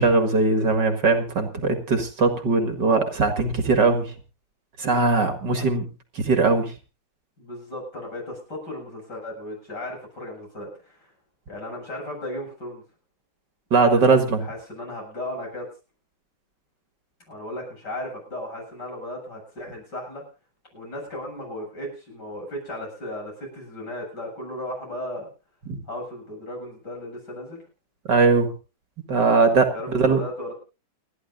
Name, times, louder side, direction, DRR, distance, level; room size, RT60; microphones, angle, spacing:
voice 1, 0.0-4.1 4.8-5.9 6.2-6.7 13.7-14.5 25.7-25.8 28.1-28.5 29.1-30.2, right 4 dB, 55° right, 6 dB, 2.4 m, -20 dB
voice 2, 7.4-11.1 11.5-12.8 13.9-15.7 17.3-20.2 20.7-25.3 25.9-27.6 29.3-29.4 29.7-30.5, left 1 dB, 50° left, 1 dB, 8.7 m, -35 dB
29.5 x 11.0 x 2.6 m, 0.30 s
omnidirectional pair, 2.3 m